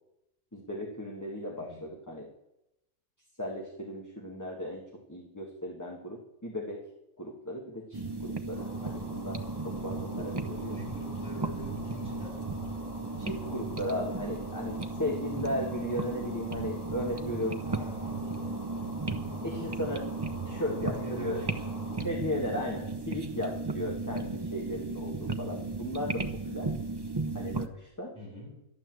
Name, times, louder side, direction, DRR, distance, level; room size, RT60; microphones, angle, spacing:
voice 1, 0.5-2.3 3.4-6.8 7.2-10.7 13.2-17.6 19.4-20.0 20.5-21.4 22.0-26.7 27.3-28.1, left 1 dB, 15° left, -1 dB, 1.7 m, -36 dB
voice 2, 1.6-1.9 10.7-12.4 17.6-18.5 19.2-19.7 20.5-22.0 28.1-28.6, left 1 dB, 5° right, -5 dB, 7.2 m, -46 dB
sound 1, 7.9-27.7, right 3 dB, 25° right, 0.6 m, -35 dB
sound 2, 8.5-22.0, left 1 dB, 45° left, 5.4 m, -47 dB
12.0 x 11.5 x 7.7 m, 0.88 s
omnidirectional pair, 1.5 m